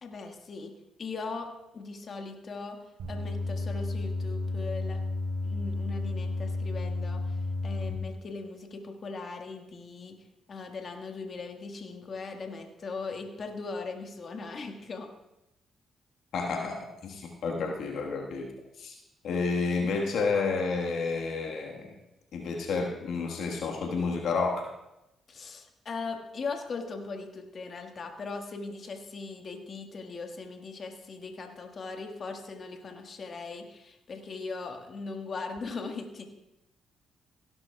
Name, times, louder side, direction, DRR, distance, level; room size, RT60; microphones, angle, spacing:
voice 1, 0.0-2.8 3.1-5.0 5.4-10.2 10.5-15.1 25.3-36.3, left 4 dB, 55° left, 4 dB, 1.5 m, -39 dB
sound 1, 3.0-7.9, left 2 dB, 80° right, 3.2 m, -32 dB
voice 2, 16.3-18.5 18.8-19.0 19.2-21.9 22.3-24.7, left 4 dB, 70° left, 1 dB, 1.4 m, -30 dB
17.0 x 11.5 x 2.3 m, 0.89 s
supercardioid pair, 55°, 0 cm